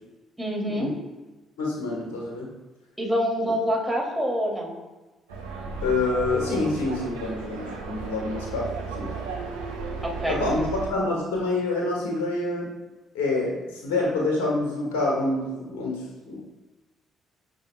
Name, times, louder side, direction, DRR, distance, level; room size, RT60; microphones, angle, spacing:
voice 1, 0.4-0.9 3.0-4.7 10.2-10.4, equal, 5° right, -2 dB, 2.8 m, -26 dB
voice 2, 1.6-2.5 5.8-9.1 10.3-12.7 13.1-16.4, left 2 dB, 70° left, -3 dB, 1.9 m, -27 dB
sound 1, 5.3-10.9, right 4 dB, 80° right, 1.3 m, -34 dB
16.5 x 5.6 x 2.4 m, 1.1 s
figure-of-eight pair, 45°, 0 cm